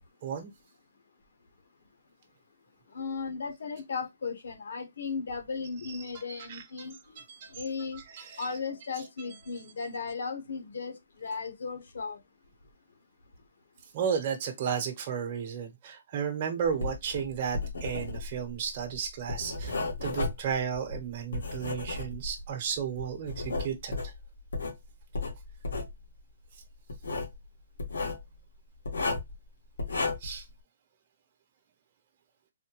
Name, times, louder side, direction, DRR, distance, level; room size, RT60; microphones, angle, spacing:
voice 1, 0.2-0.5 6.4-6.9 7.4-7.5 8.1-8.5 13.9-24.0 30.2-30.4, right 7 dB, 30° right, 1.1 m, -33 dB
voice 2, 2.9-7.2 7.5-8.0 8.4-12.2, left 5 dB, 65° left, 1.1 m, -36 dB
Writing, 16.7-22.5 23.0-24.8 25.1-25.9 26.9-27.4 27.8-28.2 28.9-29.4 29.8-30.4, left 3 dB, 85° left, 1.6 m, -33 dB
4.1 x 2.2 x 3.0 m
hypercardioid pair, 170°, 0 cm